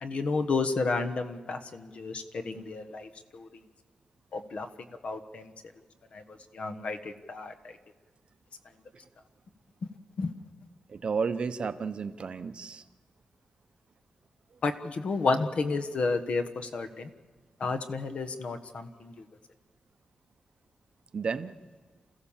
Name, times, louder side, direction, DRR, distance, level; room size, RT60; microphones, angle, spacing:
voice 1, 0.0-3.5 4.3-4.7 5.0-5.5 6.1-6.2 6.5-7.5 10.2-10.3 14.6-17.1 17.6-19.1, left 3 dB, 55° left, 7 dB, 1.3 m, -31 dB
voice 2, 10.9-12.8 21.1-21.5, right 5 dB, 50° right, 11 dB, 0.8 m, -32 dB
28.0 x 15.5 x 7.3 m, 1.4 s
wide cardioid pair, 160°, 2 cm